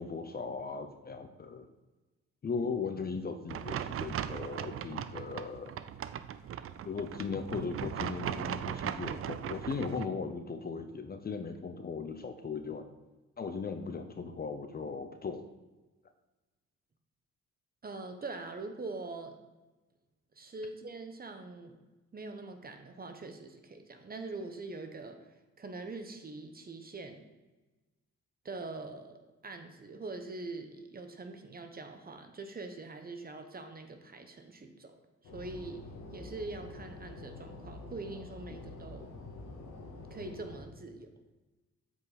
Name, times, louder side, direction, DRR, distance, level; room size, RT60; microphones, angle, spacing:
voice 1, 0.0-1.7 2.4-5.7 6.8-12.8 13.4-15.4 38.5-38.6, left 5 dB, 30° left, 7 dB, 0.7 m, -38 dB
sound 1, 3.5-10.1, right 9 dB, 50° right, 0.4 m, -38 dB
voice 2, 17.8-19.4 20.4-21.8 22.1-25.2 25.6-27.2 28.4-35.0 35.2-35.8 36.1-39.1 40.1-41.1, right 3 dB, 30° right, 6 dB, 1.0 m, -43 dB
sound 2, 35.2-40.6, left 2 dB, 85° left, 1.8 m, -47 dB
8.2 x 5.1 x 4.1 m, 1.2 s
cardioid pair, 90°, 30 cm